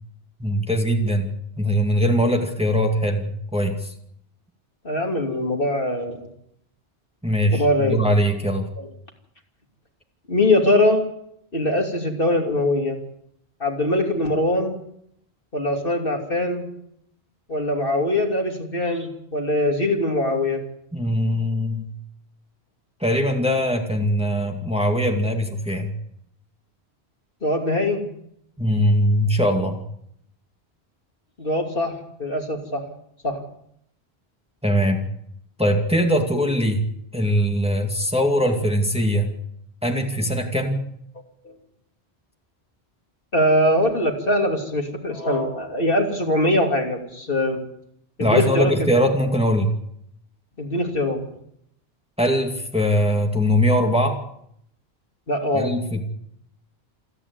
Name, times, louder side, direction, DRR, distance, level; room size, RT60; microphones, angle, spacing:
voice 1, 0.4-3.9 7.2-8.7 20.9-21.9 23.0-25.9 28.6-29.8 34.6-35.0 35.6-36.8 37.1-39.3 39.8-40.8 48.2-49.7 52.2-54.2 55.5-56.0, equal, 5° right, 3 dB, 2.2 m, -21 dB
voice 2, 4.8-6.3 7.5-8.0 8.8-8.9 10.3-11.0 11.5-13.0 13.6-14.8 15.5-16.7 17.5-20.6 27.4-28.0 31.4-32.8 33.2-33.4 41.4-41.5 43.3-47.6 48.2-48.9 50.6-51.3 55.3-55.7, left 1 dB, 60° left, 2 dB, 3.2 m, -22 dB
27.5 x 9.9 x 9.7 m, 0.73 s
omnidirectional pair, 1.1 m